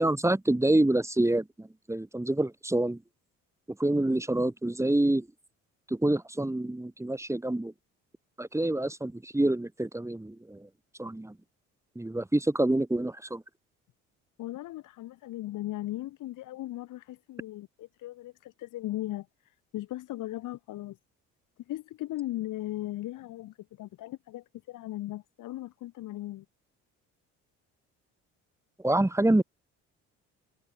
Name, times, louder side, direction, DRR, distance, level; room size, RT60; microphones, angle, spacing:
voice 1, 0.0-3.0 3.8-5.3 5.9-7.7 8.4-10.7 11.0-11.4 11.9-13.4 28.8-29.4, right 1 dB, 10° right, 2.8 m, -27 dB
voice 2, 14.4-21.0 21.7-26.5, left 15 dB, 70° left, 3.8 m, -38 dB
supercardioid pair, 75°, 32 cm